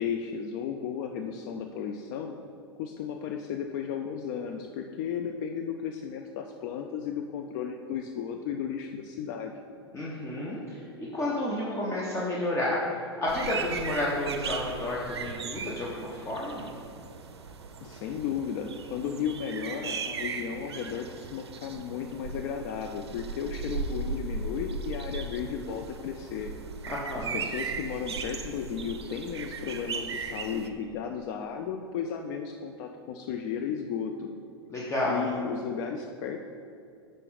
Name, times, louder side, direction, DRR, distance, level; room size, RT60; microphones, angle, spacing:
voice 1, 0.0-2.3 2.8-9.5 17.8-26.5 27.2-34.3 35.0-36.4, left 7 dB, 45° left, 5 dB, 0.4 m, -34 dB
voice 2, 9.9-12.8 13.2-16.7 26.9-27.4 34.7-35.2, left 1 dB, 20° left, -5 dB, 0.8 m, -31 dB
sound 1, 13.3-30.7, right 4 dB, 75° right, 0.5 m, -37 dB
5.6 x 5.0 x 3.9 m, 2.5 s
figure-of-eight pair, 90°, 14 cm